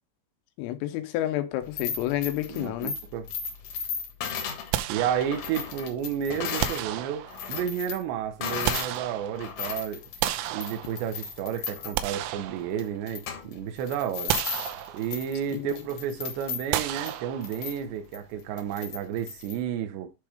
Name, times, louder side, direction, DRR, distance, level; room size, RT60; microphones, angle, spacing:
voice 1, 0.6-3.0 15.5-15.8, left 14 dB, 90° left, 3.6 m, -30 dB
sound 1, 1.6-6.9 7.2-9.0 9.3-19.6, left 7 dB, 70° left, 1.9 m, -36 dB
voice 2, 2.5-3.3 4.9-10.0 10.5-14.4 14.9-20.1, right 9 dB, 70° right, 3.0 m, -31 dB
sound 2, 4.7-5.8 6.6-7.7 8.3-9.7 10.2-11.3 11.7-13.2 13.6-13.7 14.3-15.4 16.7-17.8, right 13 dB, 90° right, 3.3 m, -32 dB
10.5 x 3.5 x 5.0 m
omnidirectional pair, 5.8 m